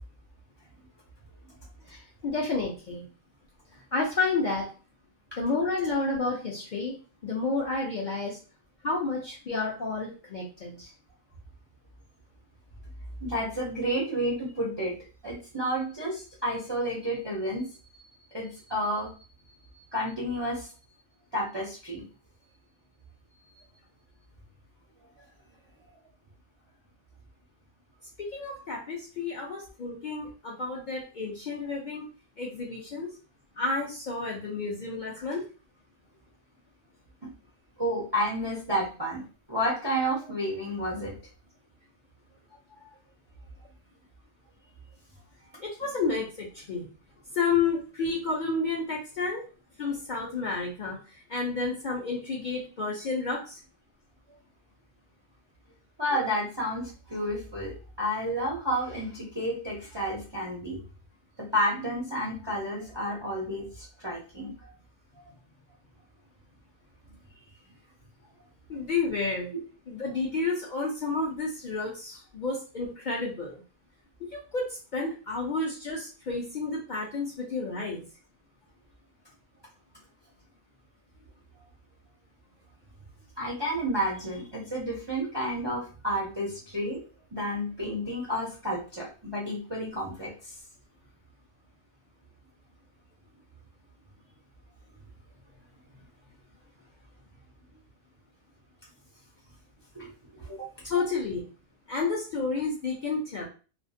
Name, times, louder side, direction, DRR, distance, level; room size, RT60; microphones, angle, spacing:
voice 1, 1.9-3.0 3.9-4.7 5.4-6.9 7.2-8.4 8.8-10.9 28.2-32.1 32.4-33.1 33.6-35.4 45.6-46.9 47.3-49.4 49.8-51.0 51.3-53.6 68.7-69.5 69.9-73.6 74.3-78.0 100.8-101.5 101.9-103.5, left 3 dB, 55° left, -3 dB, 0.6 m, -30 dB
voice 2, 13.2-14.9 15.2-17.7 18.3-19.1 19.9-20.7 21.3-22.0 37.2-37.3 37.8-41.1 56.0-60.8 61.4-64.7 83.4-87.0 87.3-90.6 99.9-100.7, equal, 35° right, -4 dB, 0.4 m, -31 dB
2.4 x 2.3 x 2.5 m, 0.36 s
omnidirectional pair, 1.3 m